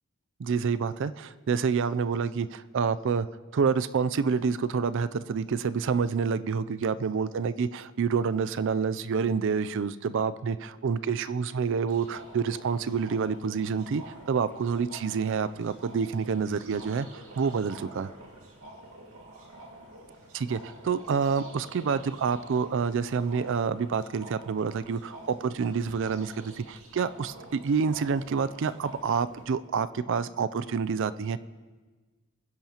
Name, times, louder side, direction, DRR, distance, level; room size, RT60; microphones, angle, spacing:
voice 1, 0.4-3.3 3.5-17.1 17.4-18.1 20.3-31.4, right 5 dB, 55° right, 15 dB, 0.4 m, -28 dB
sound 1, 11.9-29.4, right 1 dB, 75° right, 2.2 m, -48 dB
22.5 x 10.5 x 2.9 m, 1.3 s
head